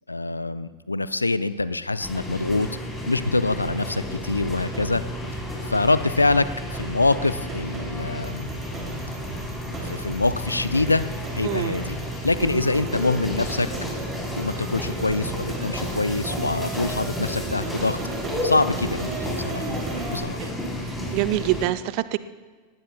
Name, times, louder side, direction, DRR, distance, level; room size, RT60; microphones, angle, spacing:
voice 1, 0.1-2.7 3.1-5.0 5.7-8.5 9.8-11.0 11.3-12.0 12.2-13.7 14.3-18.0 18.4-19.8 20.1-20.5, left 3 dB, 80° left, 15 dB, 0.5 m, -24 dB
sound 1, 2.0-21.7, equal, 10° left, 4.0 m, -32 dB
sound 2, 4.2-20.2, right 2 dB, 25° right, 3.1 m, -36 dB
voice 2, 11.4-11.7 12.4-12.5 20.4-20.5 20.9-22.2, right 15 dB, 45° right, 15 dB, 0.5 m, -25 dB
18.5 x 17.5 x 2.3 m, 1.5 s
figure-of-eight pair, 90°, 0 cm